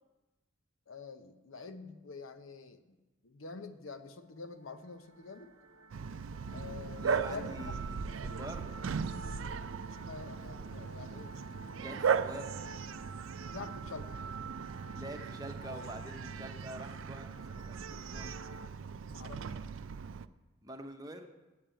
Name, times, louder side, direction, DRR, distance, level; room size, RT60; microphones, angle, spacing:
voice 1, 0.9-3.0 3.2-5.5 6.5-7.6 10.1-11.3 13.5-14.2 19.1-19.6, left 4 dB, 75° left, 9 dB, 0.8 m, -46 dB
sound 1, 4.5-18.7, right 3 dB, 90° right, 0.8 m, -50 dB
Bark, 5.9-20.3, right 6 dB, 70° right, 0.4 m, -38 dB
voice 2, 6.5-8.7 11.8-12.6 14.9-18.4 20.6-21.3, right 1 dB, 20° right, 4 dB, 0.8 m, -46 dB
8.7 x 8.6 x 8.9 m, 1.1 s
head